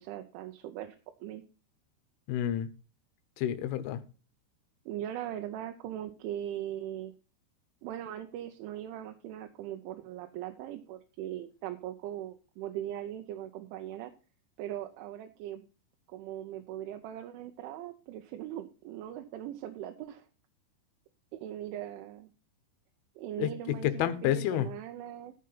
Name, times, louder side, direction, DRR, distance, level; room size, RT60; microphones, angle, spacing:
voice 1, 0.0-1.4 4.9-7.1 7.8-14.1 14.6-15.6 16.1-20.3 21.3-22.3 23.2-25.3, right 12 dB, 80° right, 3.0 m, -40 dB
voice 2, 2.3-2.7 3.4-4.0 23.4-24.7, left 11 dB, 80° left, 3.3 m, -29 dB
14.0 x 5.4 x 5.5 m
omnidirectional pair, 5.8 m